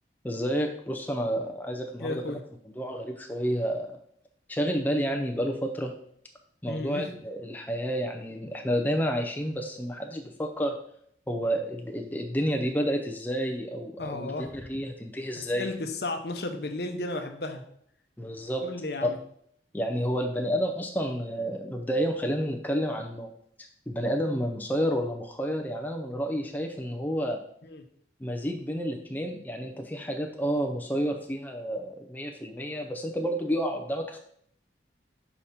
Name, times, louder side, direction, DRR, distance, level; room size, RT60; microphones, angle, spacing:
voice 1, 0.2-2.4 2.8-4.0 4.5-5.9 6.6-10.8 11.3-15.7 18.2-18.6 19.0-19.1 19.7-23.3 23.9-27.4 28.2-34.2, equal, 10° left, 3 dB, 0.5 m, -30 dB
voice 2, 2.0-2.4 6.7-7.1 14.0-14.5 15.4-17.6 18.6-19.2 27.7-27.8, left 2 dB, 60° left, 5 dB, 0.8 m, -34 dB
5.8 x 5.0 x 4.2 m, 0.66 s
head